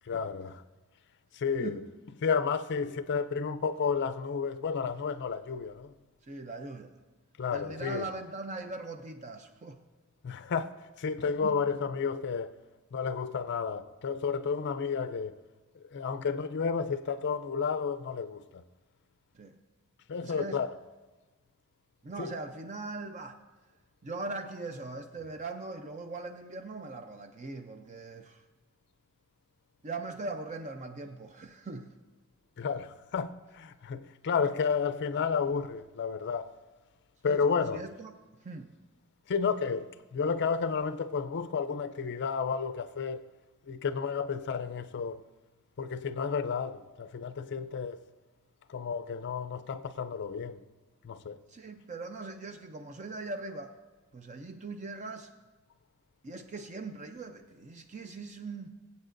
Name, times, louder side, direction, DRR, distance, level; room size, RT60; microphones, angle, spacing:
voice 1, 0.1-0.6 1.3-1.8 2.2-5.9 7.4-8.1 10.2-12.5 12.9-15.4 15.9-18.6 20.1-20.7 22.2-22.3 32.6-36.5 37.2-37.8 39.3-43.2 43.7-45.2 45.8-48.0 48.7-50.6 51.0-51.4, left 5 dB, 50° left, 0.4 m, -31 dB
voice 2, 6.3-6.9 7.5-9.8 11.4-11.6 19.3-19.6 20.2-20.6 22.0-23.4 24.0-28.4 29.8-31.9 37.3-37.4 37.7-38.2 38.4-38.7 51.5-53.7 54.1-55.3 56.2-58.7, right 3 dB, 35° right, 0.5 m, -40 dB
22.5 x 8.3 x 2.6 m
head